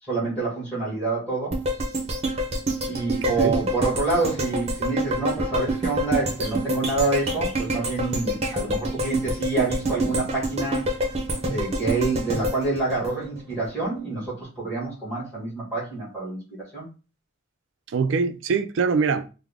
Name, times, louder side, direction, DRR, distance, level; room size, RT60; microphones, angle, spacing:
voice 1, 0.1-1.5 2.8-10.8 11.5-16.4 16.7-16.8, right 3 dB, 10° left, 1.4 m, -27 dB
sound 1, 1.5-13.7 14.1-14.2, right 1 dB, 30° right, 0.6 m, -27 dB
voice 2, 3.2-3.6 17.9-19.3, right 5 dB, 70° right, 0.4 m, -23 dB
3.5 x 2.0 x 3.4 m
head